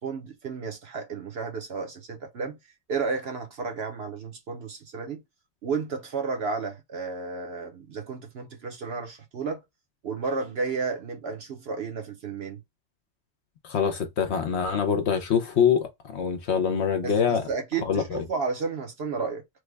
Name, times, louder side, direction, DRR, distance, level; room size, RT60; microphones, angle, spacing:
voice 1, 0.0-2.6 2.9-5.2 5.6-9.6 10.0-12.6 17.0-19.4, right 4 dB, 55° right, 0.9 m, -32 dB
voice 2, 13.6-17.4 17.9-18.2, left 7 dB, 60° left, 0.8 m, -24 dB
3.2 x 2.2 x 3.3 m
omnidirectional pair, 1.4 m